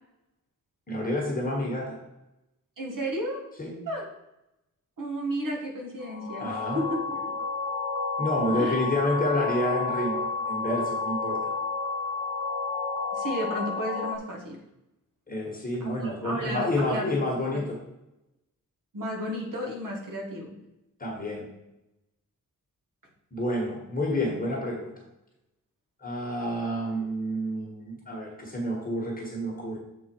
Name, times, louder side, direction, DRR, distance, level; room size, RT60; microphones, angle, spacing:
voice 1, 0.9-2.0 3.6-3.7 6.4-6.8 8.2-11.5 15.3-17.8 21.0-21.5 23.3-24.9 26.0-29.8, left 1 dB, 25° left, -2 dB, 1.5 m, -29 dB
voice 2, 2.8-3.4 3.9-4.0 5.0-7.4 8.5-8.8 13.1-14.6 15.8-17.1 18.9-20.6, equal, 65° right, 0 dB, 1.6 m, -33 dB
sound 1, 6.0-14.2, left 4 dB, 65° left, 0.8 m, -31 dB
7.2 x 4.2 x 4.5 m, 0.90 s
wide cardioid pair, 175°, 34 cm